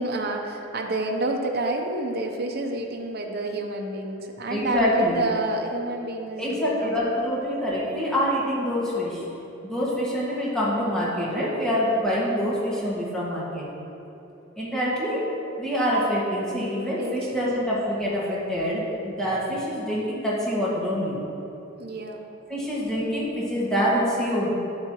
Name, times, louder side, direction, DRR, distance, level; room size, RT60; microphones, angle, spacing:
voice 1, 0.0-6.9 7.2-7.3 17.0-17.3 21.8-22.3, right 2 dB, 50° right, 2 dB, 0.8 m, -29 dB
voice 2, 4.5-5.2 6.4-9.2 9.6-13.6 14.6-15.2 15.6-21.2 22.5-24.5, equal, 5° left, -8 dB, 1.8 m, -25 dB
9.4 x 8.7 x 3.1 m, 2.9 s
head